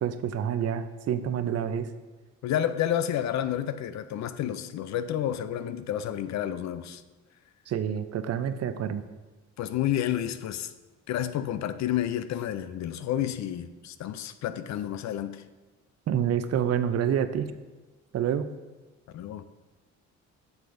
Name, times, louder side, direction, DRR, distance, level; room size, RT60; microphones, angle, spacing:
voice 1, 0.0-1.9 7.7-9.0 16.1-17.5 18.1-18.5, right 9 dB, 55° right, 0.5 m, -28 dB
voice 2, 2.4-7.0 9.6-10.7 11.1-15.4 19.1-19.4, left 11 dB, 65° left, 0.5 m, -30 dB
7.9 x 6.9 x 2.6 m
cardioid pair, 90°, 30 cm